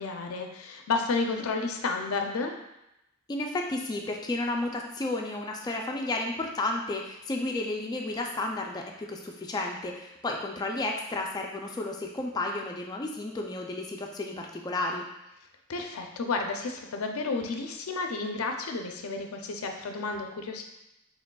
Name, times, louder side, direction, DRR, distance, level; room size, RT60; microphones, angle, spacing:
voice 1, 0.0-2.5 15.7-20.6, left 4 dB, 90° left, 4 dB, 0.5 m, -31 dB
voice 2, 3.3-15.1, left 2 dB, 20° left, 1 dB, 0.3 m, -32 dB
4.7 x 3.4 x 2.2 m, 0.89 s
head